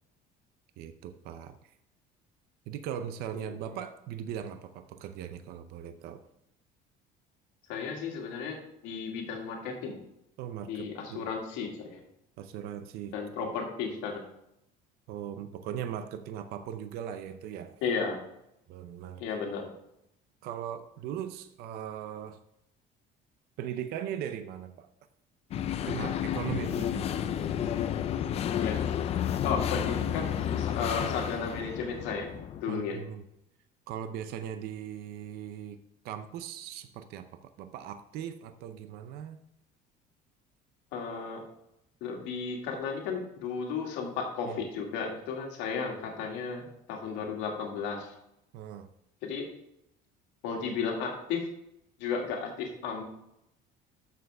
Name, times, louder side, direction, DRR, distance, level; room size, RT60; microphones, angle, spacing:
voice 1, 0.8-1.7 2.7-6.2 10.4-11.3 12.4-13.5 15.1-17.8 18.7-19.2 20.4-22.4 23.6-24.9 25.9-27.1 32.7-33.3 33.9-39.4 44.5-44.6 48.5-48.9, right 9 dB, 60° right, 10 dB, 0.6 m, -39 dB
voice 2, 7.7-8.6 8.8-10.0 10.7-12.0 13.1-14.2 17.8-18.2 19.2-19.6 28.6-28.8 29.4-32.3 32.6-33.0 40.9-41.4 42.0-46.6 46.9-48.1 49.2-49.5 50.4-51.4 52.0-53.0, left 5 dB, 80° left, 1 dB, 2.2 m, -34 dB
sound 1, 25.5-32.6, left 9 dB, 35° left, 0.5 m, -31 dB
13.0 x 6.6 x 3.5 m, 0.82 s
cardioid pair, 175°, 19 cm